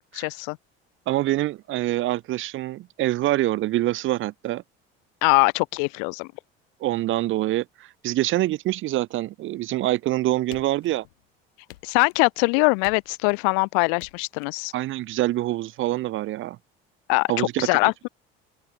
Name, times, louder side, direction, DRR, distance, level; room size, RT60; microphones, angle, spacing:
voice 1, 0.1-0.6 5.2-6.3 11.8-14.7 17.1-18.1, left 40 dB or more, 70° left, 0.5 m, -22 dB
voice 2, 1.1-4.6 6.8-11.0 14.7-16.6 17.3-17.7, right 15 dB, 45° right, 0.4 m, -25 dB
sound 1, 10.5-11.3 11.7-12.3 12.8-13.5 14.0-14.5, left 17 dB, 85° left, 2.3 m, -48 dB
open air
hypercardioid pair, 70°, 29 cm